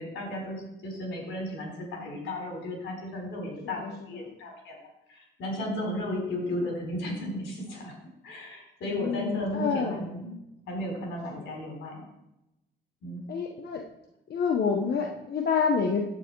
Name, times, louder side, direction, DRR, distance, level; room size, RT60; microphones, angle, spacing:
voice 1, 0.0-4.8 5.1-7.9 8.2-10.4 10.7-12.0 13.0-13.2, left 1 dB, 80° left, 1 dB, 4.1 m, -34 dB
voice 2, 8.9-10.0 11.3-11.5 13.3-13.8 14.3-16.0, left 5 dB, 55° left, 2 dB, 1.1 m, -28 dB
9.9 x 8.4 x 4.7 m, 0.87 s
cardioid pair, 90°, 20 cm